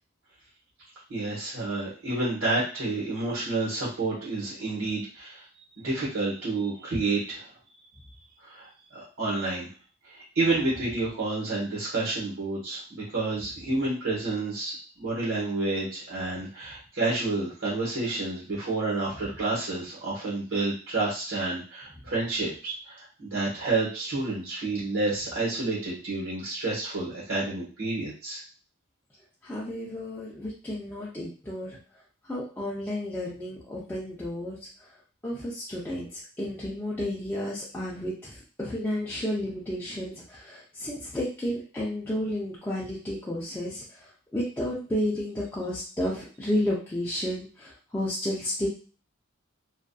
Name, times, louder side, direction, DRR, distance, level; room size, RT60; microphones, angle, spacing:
voice 1, 1.1-5.4 5.8-7.5 8.4-9.7 10.0-28.4, right 2 dB, 75° right, -7 dB, 1.1 m, -29 dB
voice 2, 29.4-31.8 32.2-35.0 35.2-48.7, left 1 dB, 10° left, -7 dB, 0.5 m, -32 dB
2.5 x 2.4 x 2.2 m, 0.38 s
head